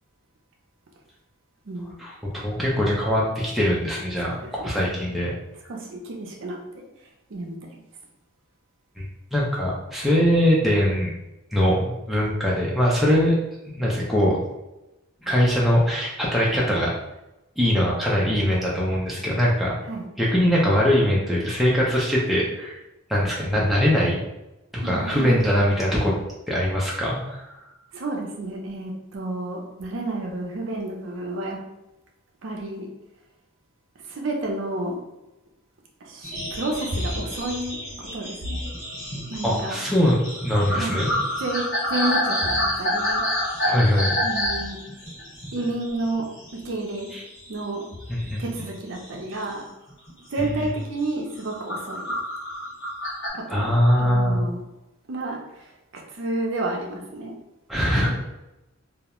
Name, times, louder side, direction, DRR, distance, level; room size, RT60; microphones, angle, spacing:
voice 1, 2.0-5.3 9.0-9.1 9.3-11.1 11.5-13.3 13.7-14.4 15.2-16.9 17.6-19.8 20.2-22.8 23.1-24.2 24.7-26.1 26.5-27.6 39.4-41.1 43.6-44.1 47.1-47.2 48.1-48.4 50.4-50.7 53.5-54.4 57.7-58.1, equal, ahead, -6 dB, 0.3 m, -22 dB
voice 2, 4.3-4.9 5.7-6.8 7.3-7.7 19.9-20.1 24.0-24.1 24.8-25.5 27.9-31.6 32.4-32.9 34.1-35.0 36.0-38.7 39.3-39.8 40.7-41.1 41.4-43.2 44.2-44.9 45.5-46.3 46.5-47.1 47.5-47.9 48.4-49.6 50.3-52.2 53.3-54.6 55.1-55.4 55.9-57.3 58.0-58.1, right 2 dB, 60° right, 0 dB, 0.5 m, -31 dB
sound 1, 36.2-46.7 46.9-47.6 47.9-49.4 49.9-50.1 50.4-50.7 51.2-53.3, left 1 dB, 60° left, 1.1 m, -28 dB
2.3 x 2.0 x 2.9 m, 0.97 s
head